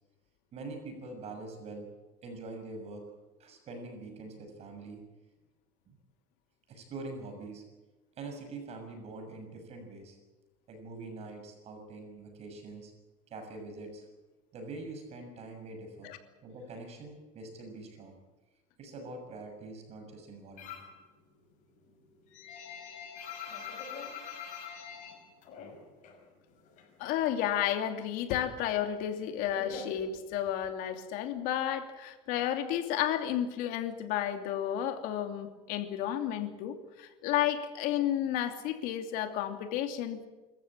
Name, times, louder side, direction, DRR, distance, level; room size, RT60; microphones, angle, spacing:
voice 1, 0.5-1.9 2.2-3.1 3.4-5.1 5.9-6.0 6.7-7.6 8.1-10.2 10.7-12.9 13.3-14.1 14.5-16.1 16.4-18.2 18.8-20.8, right 3 dB, 45° right, 5 dB, 6.7 m, -44 dB
sound 1, 20.6-21.0 21.4-26.2 26.5-27.6 27.8-30.7, left 6 dB, 55° left, 6.0 m, -44 dB
voice 2, 27.0-40.3, left 11 dB, 75° left, 7 dB, 2.8 m, -32 dB
26.5 x 14.5 x 8.8 m, 1.2 s
cardioid pair, 130°, 15 cm